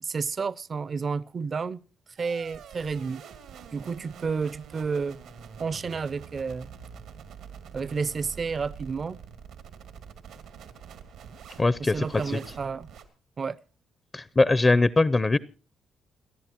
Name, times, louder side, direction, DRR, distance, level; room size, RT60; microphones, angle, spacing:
voice 1, 0.0-1.8 2.2-3.2 3.7-5.2 5.6-6.7 7.7-9.2 11.8-12.9 13.4-13.6, right 5 dB, 40° right, 0.6 m, -31 dB
sound 1, 2.2-13.0, right 7 dB, 90° right, 2.4 m, -46 dB
voice 2, 11.6-12.4 14.1-15.4, left 2 dB, 25° left, 0.6 m, -22 dB
29.0 x 11.0 x 2.9 m
cardioid pair, 90°, 0 cm